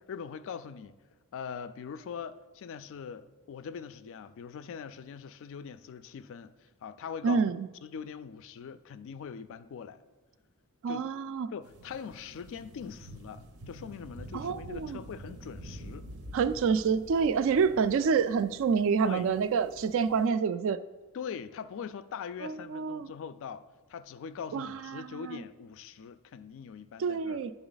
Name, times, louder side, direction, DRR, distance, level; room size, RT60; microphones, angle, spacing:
voice 1, 0.1-1.0 1.3-7.5 7.8-10.0 10.9-11.0 11.5-16.1 19.0-19.3 21.1-27.4, left 6 dB, 60° left, 0.3 m, -42 dB
voice 2, 7.2-7.7 10.8-11.5 14.3-15.0 16.3-20.8 22.4-23.1 24.5-25.4 27.0-27.5, right 6 dB, 60° right, 0.3 m, -28 dB
sound 1, 11.6-20.3, right 1 dB, 85° right, 0.8 m, -48 dB
10.5 x 3.9 x 3.9 m
head